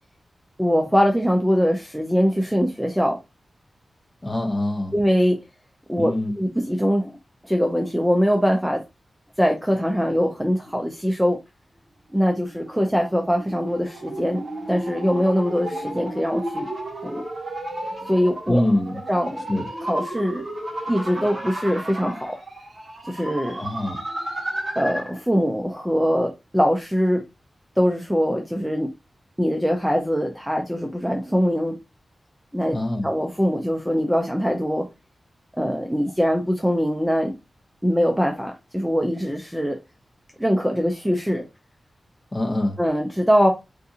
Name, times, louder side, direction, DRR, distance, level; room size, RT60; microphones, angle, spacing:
voice 1, 0.6-3.2 4.9-5.4 5.9-7.1 7.4-8.8 9.4-11.4 12.1-16.7 17.0-17.2 18.1-18.6 19.1-19.4 19.8-20.4 20.9-22.4 23.1-23.6 24.8-27.2 27.8-28.9 29.4-31.8 32.5-32.8 33.0-34.9 35.6-37.3 37.8-39.8 40.4-41.4 42.8-43.5, equal, 5° right, 0.4 m, -22 dB
voice 2, 4.2-4.9 6.0-6.3 18.5-19.0 19.5-19.7 23.6-24.0 32.7-33.1 42.3-42.8, left 1 dB, 20° left, 0.9 m, -24 dB
sound 1, 12.5-25.2, right 1 dB, 30° right, 1.4 m, -33 dB
3.7 x 2.5 x 2.7 m
wide cardioid pair, 155°, 0 cm